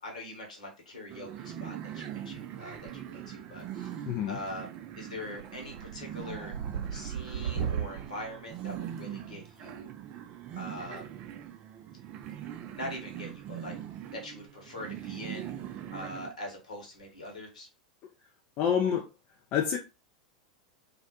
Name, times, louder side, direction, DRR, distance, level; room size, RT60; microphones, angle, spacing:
voice 1, 0.0-4.7 5.0-6.6 6.9-9.9 10.6-11.1 12.7-13.8 14.1-15.5 15.9-17.7, left 1 dB, 70° left, 1.0 m, -42 dB
sound 1, 1.1-16.3, right 10 dB, 35° right, 0.3 m, -42 dB
sound 2, 2.7-3.3 3.6-4.1 4.5-4.8 5.1-9.5 10.9-11.0 12.2-13.0 13.3-13.5 14.1-14.2 14.4-14.5 14.9-15.1 15.4-15.5 17.0-17.3, right 8 dB, 55° right, 0.7 m, -38 dB
voice 2, 4.1-4.4 18.6-19.1 19.5-19.8, left 8 dB, 40° left, 0.3 m, -27 dB
2.4 x 2.0 x 2.8 m
figure-of-eight pair, 90°, 4 cm